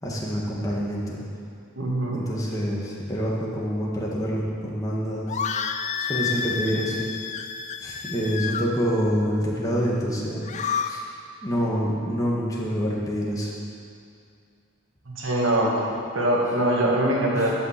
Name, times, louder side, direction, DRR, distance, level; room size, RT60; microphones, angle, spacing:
voice 1, 0.0-1.2 2.1-5.4 6.0-7.0 7.8-10.4 10.8-11.0 11.4-13.5, equal, 15° left, -4 dB, 1.9 m, -26 dB
voice 2, 1.8-2.2 15.2-15.7 16.1-17.5, right 1 dB, 80° right, -3 dB, 2.2 m, -22 dB
sound 1, 5.3-8.7 10.3-10.9, left 6 dB, 35° left, 0.5 m, -29 dB
12.0 x 5.5 x 7.5 m, 2.3 s
head